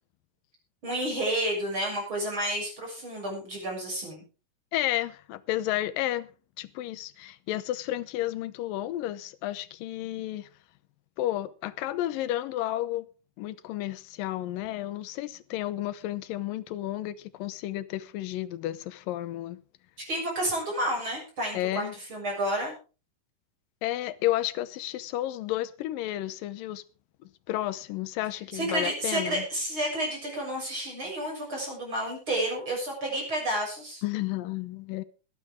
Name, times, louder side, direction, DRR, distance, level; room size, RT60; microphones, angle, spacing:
voice 1, 0.8-4.2 20.1-22.7 28.5-34.0, right 1 dB, 35° right, 7.4 m, -30 dB
voice 2, 4.7-6.3 6.6-10.5 11.2-13.1 13.4-19.6 21.5-21.9 23.8-26.8 27.2-29.5 34.0-35.0, left 14 dB, 80° left, 2.5 m, -32 dB
21.5 x 9.8 x 3.6 m
omnidirectional pair, 3.9 m